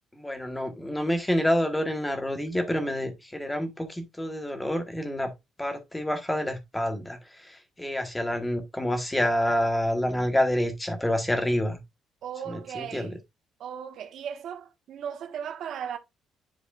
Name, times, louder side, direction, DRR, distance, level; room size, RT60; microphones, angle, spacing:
voice 1, 0.1-5.3 5.6-11.8 12.5-13.2, left 1 dB, 5° left, 1.3 m, -28 dB
voice 2, 12.2-13.2 13.6-16.0, right 8 dB, 60° right, 1.3 m, -37 dB
10.5 x 4.6 x 2.4 m
cardioid pair, 160°, 0 cm